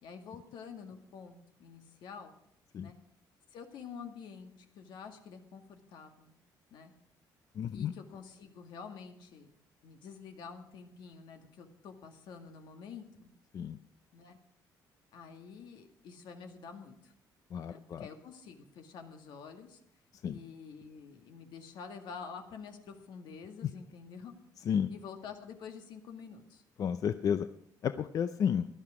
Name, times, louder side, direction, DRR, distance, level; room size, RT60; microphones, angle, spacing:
voice 1, 0.0-2.3 2.8-2.9 3.5-6.3 6.7-6.9 7.7-9.5 9.8-13.3 14.1-14.4 15.1-17.1 17.7-19.8 20.2-24.3 24.9-26.6, left 6 dB, 75° left, 6 dB, 1.9 m, -48 dB
voice 2, 7.6-7.9 13.5-13.8 17.5-18.1 20.2-20.4 24.7-24.9 26.8-27.5 27.8-28.7, left 8 dB, 50° left, 11 dB, 0.5 m, -31 dB
16.5 x 11.5 x 4.9 m, 0.72 s
cardioid pair, 130°, 8 cm